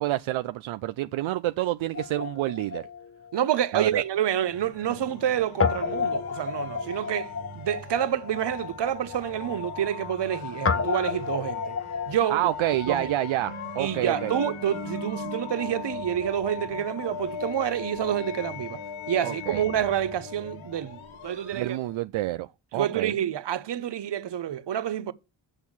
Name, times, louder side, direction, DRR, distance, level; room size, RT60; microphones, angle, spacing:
voice 1, 0.0-2.9 3.7-4.0 12.3-14.3 19.2-19.6 21.5-23.2, right 15 dB, 75° right, 0.5 m, -28 dB
Guitar, 1.9-4.4 4.6-4.7 5.6-13.5, left 5 dB, 30° left, 1.1 m, -32 dB
voice 2, 3.3-11.7 12.1-12.5 12.9-13.1 13.8-18.8 19.1-21.8 22.7-25.1, right 10 dB, 60° right, 0.9 m, -28 dB
sound 1, 4.5-22.0, left 5 dB, 75° left, 1.8 m, -38 dB
6.7 x 6.3 x 7.2 m
cardioid pair, 50°, 48 cm